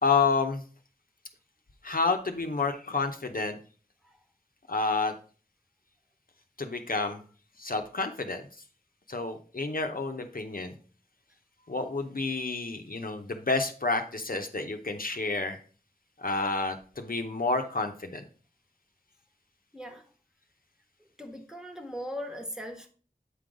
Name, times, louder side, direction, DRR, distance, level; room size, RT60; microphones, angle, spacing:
voice 1, 0.0-0.6 1.8-3.6 4.7-5.1 6.6-7.2 7.6-8.4 9.1-10.7 11.7-15.6 16.2-18.2, left 3 dB, 65° left, 0.8 m, -29 dB
voice 2, 19.7-20.1 21.2-22.9, equal, 5° right, 1.2 m, -39 dB
8.4 x 3.8 x 4.9 m
wide cardioid pair, 45°, 16 cm